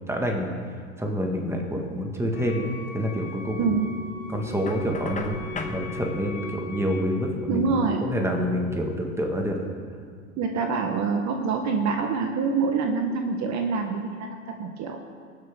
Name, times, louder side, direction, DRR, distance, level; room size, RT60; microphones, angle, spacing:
voice 1, 0.1-0.5 1.0-3.7 4.3-7.6 8.0-9.6, equal, 5° right, 1 dB, 1.7 m, -27 dB
Wind instrument woodwind instrument, 2.3-7.2, left 3 dB, 55° left, 1.1 m, -43 dB
sound 1, 3.4-9.0, left 4 dB, 85° left, 3.2 m, -40 dB
voice 2, 3.6-3.9 7.5-8.1 10.4-15.0, right 4 dB, 45° right, 4 dB, 1.2 m, -26 dB
Knock, 4.7-5.8, left 4 dB, 20° left, 1.1 m, -36 dB
21.0 x 7.8 x 3.7 m, 2.1 s
hypercardioid pair, 100°, 39 cm